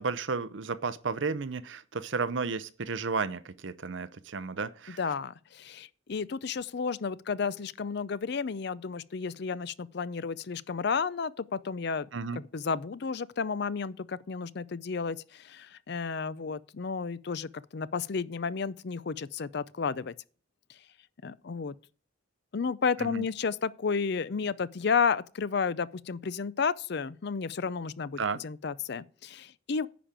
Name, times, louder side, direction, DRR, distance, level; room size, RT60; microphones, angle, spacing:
voice 1, 0.0-5.0 12.1-12.4 23.0-23.3 28.2-28.4, right 4 dB, 65° right, 0.7 m, -33 dB
voice 2, 5.0-12.1 12.5-20.1 21.2-21.7 22.5-29.9, left 5 dB, 55° left, 0.5 m, -32 dB
10.0 x 5.1 x 7.4 m
head